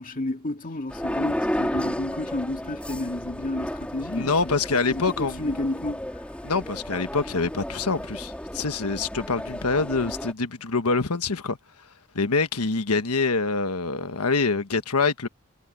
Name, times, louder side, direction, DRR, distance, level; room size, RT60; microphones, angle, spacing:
voice 1, 0.0-6.2, left 2 dB, 40° left, 2.1 m, -31 dB
sound 1, 0.9-10.3, equal, 5° left, 3.2 m, -33 dB
voice 2, 4.2-5.4 6.4-11.6 12.1-15.3, left 4 dB, 75° left, 1.3 m, -25 dB
head